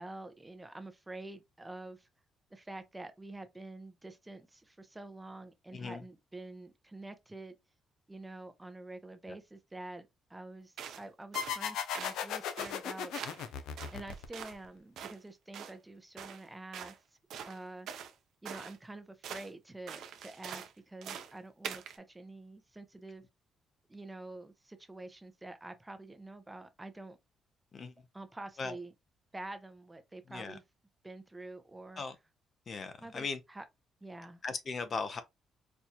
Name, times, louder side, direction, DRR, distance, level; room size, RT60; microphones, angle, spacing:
voice 1, 0.0-2.1 2.5-7.6 8.1-13.4 13.9-16.9 17.5-17.9 18.4-23.2 23.9-27.2 28.1-28.9 29.3-30.6 31.0-32.0 33.0-33.6 34.0-34.4, right 2 dB, 15° right, 0.6 m, -47 dB
voice 2, 5.7-6.0 27.7-27.9 28.6-28.8 30.3-30.6 32.0-32.2 32.7-33.4 34.4-35.2, left 4 dB, 45° left, 0.6 m, -38 dB
sound 1, 10.8-11.0 11.3-11.6 11.9-12.2 12.6-12.8 13.1-13.5 13.8-14.6 15.0-15.2 15.5-15.8 16.2-16.4 16.7-17.0 17.3-18.1 18.5-18.8 19.2-19.5 19.9-20.7 21.0-21.3 21.6-22.0, right 8 dB, 75° right, 0.6 m, -44 dB
sound 2, 11.4-14.7, left 8 dB, 85° left, 0.5 m, -37 dB
4.3 x 2.3 x 2.8 m
cardioid pair, 90°, 0 cm